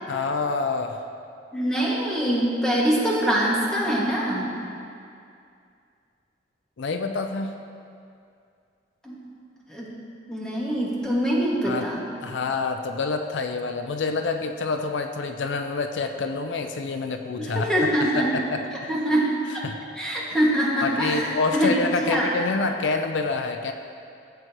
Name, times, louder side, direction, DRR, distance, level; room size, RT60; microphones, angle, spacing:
voice 1, 0.1-1.0 6.8-7.5 11.6-11.9 12.2-17.7 18.0-18.6 19.6-19.8 20.8-23.7, left 4 dB, 75° left, 6 dB, 0.5 m, -27 dB
voice 2, 1.5-4.5 9.0-9.2 9.7-9.9 10.3-12.0 17.4-18.3 18.9-19.6 20.0-21.7 22.0-22.3, equal, 5° left, -6 dB, 1.9 m, -24 dB
15.5 x 7.9 x 3.0 m, 2.4 s
head